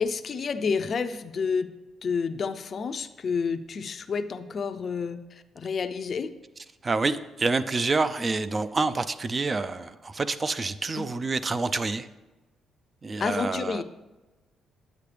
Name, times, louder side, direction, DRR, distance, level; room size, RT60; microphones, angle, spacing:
voice 1, 0.0-1.7 2.0-6.3 11.0-11.1 13.2-13.8, left 5 dB, 50° left, 9 dB, 0.5 m, -29 dB
voice 2, 6.8-12.1 13.0-13.8, right 3 dB, 30° right, 13 dB, 0.5 m, -27 dB
9.2 x 8.5 x 3.3 m, 1.1 s
cardioid pair, 90°, 0 cm